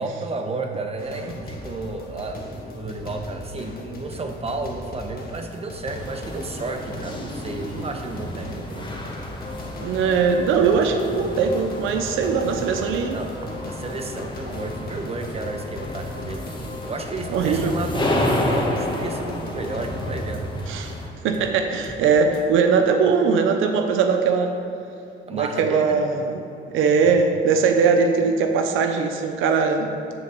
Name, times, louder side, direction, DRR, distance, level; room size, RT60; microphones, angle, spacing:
voice 1, 0.0-8.9 13.1-16.5 16.9-20.5 25.2-26.0, right 3 dB, 30° right, 4 dB, 1.1 m, -32 dB
sound 1, 1.0-20.3, left 2 dB, 50° left, 1.6 m, -37 dB
sound 2, 5.9-21.1, left 1 dB, 25° left, 1.8 m, -31 dB
voice 2, 9.8-13.2 17.3-17.8 20.7-20.9 21.2-24.5 25.3-26.4 26.7-29.9, right 5 dB, 90° right, 5 dB, 0.7 m, -20 dB
sound 3, 15.8-16.1 16.3-16.8 17.3-17.6 17.8-18.1 19.8-20.1 20.3-20.8 21.3-21.6 21.8-22.1 22.3-22.4, right 2 dB, 45° right, 1.9 m, -40 dB
11.0 x 4.1 x 6.8 m, 2.7 s
cardioid pair, 90°, 20 cm